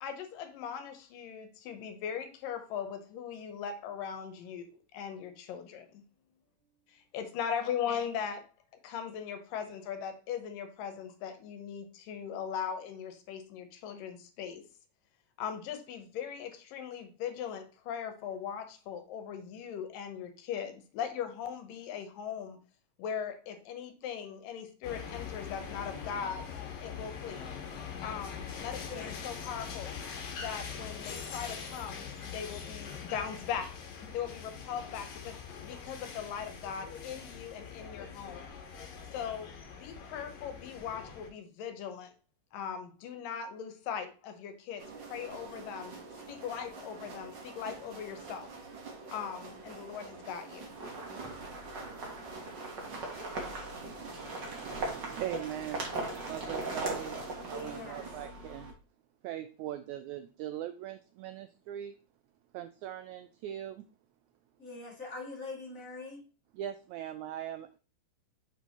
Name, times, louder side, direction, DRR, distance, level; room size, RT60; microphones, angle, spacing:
voice 1, 0.0-6.0 7.1-8.4 8.8-14.6 15.4-22.6 23.0-26.5 26.8-27.5 28.0-30.0 30.4-33.7 34.1-38.5 39.1-42.1 42.5-44.8 45.1-46.0 46.3-48.5 49.1-50.7, left 8 dB, 80° left, 8 dB, 2.6 m, -39 dB
sound 1, 24.8-41.3, left 6 dB, 65° left, 2.6 m, -43 dB
sound 2, 44.8-58.2, right 3 dB, 60° right, 1.2 m, -47 dB
sound 3, 50.7-58.7, right 2 dB, 40° right, 2.0 m, -39 dB
voice 2, 54.5-55.9 56.3-57.2 57.5-58.7 59.2-62.0 62.5-63.8 66.5-67.8, right 12 dB, 85° right, 9 dB, 1.7 m, -40 dB
voice 3, 56.0-56.6 57.5-58.1 64.6-66.2, left 3 dB, 25° left, -3 dB, 2.7 m, -44 dB
7.0 x 6.0 x 2.9 m, 0.36 s
omnidirectional pair, 3.9 m